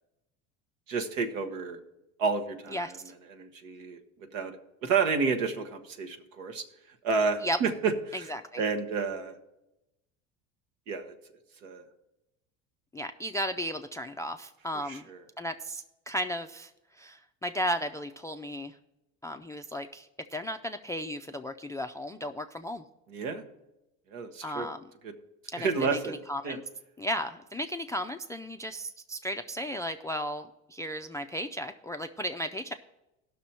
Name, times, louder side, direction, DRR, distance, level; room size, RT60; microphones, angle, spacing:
voice 1, 0.9-1.8 2.2-2.9 3.3-4.0 4.3-6.6 7.0-8.2 8.6-9.3 10.9-11.1 11.6-11.8 14.8-15.2 23.1-23.4 24.1-24.7 25.0-25.1 25.5-26.6, right 5 dB, 85° right, 6 dB, 1.3 m, -30 dB
voice 2, 8.1-8.6 12.9-15.1 15.4-18.8 19.2-22.8 24.4-24.8 25.5-26.6 27.0-32.7, equal, 10° left, 8 dB, 0.3 m, -35 dB
16.0 x 6.2 x 4.3 m, 0.92 s
hypercardioid pair, 85°, 39 cm